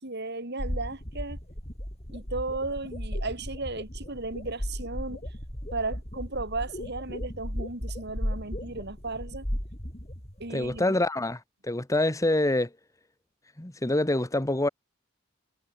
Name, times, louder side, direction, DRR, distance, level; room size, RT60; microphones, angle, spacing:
voice 1, 0.0-1.4 2.1-5.2 5.7-9.5 10.4-10.8, right 3 dB, 55° right, 4.9 m, -35 dB
sound 1, 0.6-10.8, equal, 30° left, 6.1 m, -36 dB
voice 2, 10.5-12.7 13.6-14.7, left 1 dB, 15° left, 1.2 m, -26 dB
head